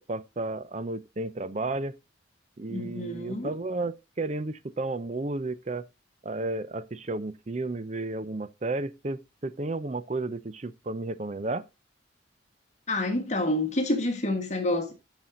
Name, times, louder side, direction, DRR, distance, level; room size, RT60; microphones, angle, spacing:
voice 1, 0.1-2.0 2.6-5.8 6.2-11.6, right 2 dB, 35° right, 0.6 m, -32 dB
voice 2, 2.7-3.5 12.9-14.9, left 1 dB, 35° left, 1.7 m, -28 dB
11.5 x 6.1 x 3.8 m
head